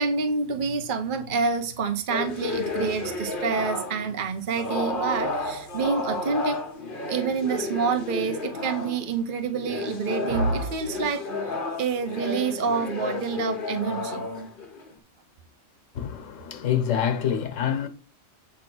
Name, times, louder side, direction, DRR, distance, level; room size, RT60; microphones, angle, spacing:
voice 1, 0.0-6.6 7.1-11.2 11.8-14.2, right 5 dB, 45° right, 1.0 m, -27 dB
sound 1, 2.1-4.2 4.6-9.1 9.5-15.0, left 2 dB, 45° left, 1.2 m, -32 dB
voice 2, 15.9-17.9, left 9 dB, 85° left, 1.3 m, -26 dB
8.5 x 3.0 x 6.0 m
omnidirectional pair, 1.3 m